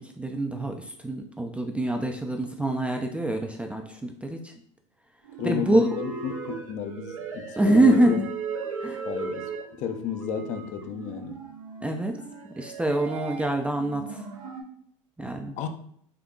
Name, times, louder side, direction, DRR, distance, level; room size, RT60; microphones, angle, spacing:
voice 1, 0.2-0.7 1.0-4.4 5.4-5.9 7.6-8.3 8.8-9.0 11.8-12.1 12.6-14.2 15.2-15.6, right 1 dB, 5° right, 3 dB, 0.3 m, -25 dB
sound 1, 5.2-14.6, right 5 dB, 85° right, 0.6 m, -37 dB
voice 2, 5.4-8.2 9.0-11.4 15.6-15.7, left 7 dB, 45° left, 7 dB, 0.5 m, -32 dB
3.7 x 2.7 x 2.3 m, 0.63 s
hypercardioid pair, 80°, 17 cm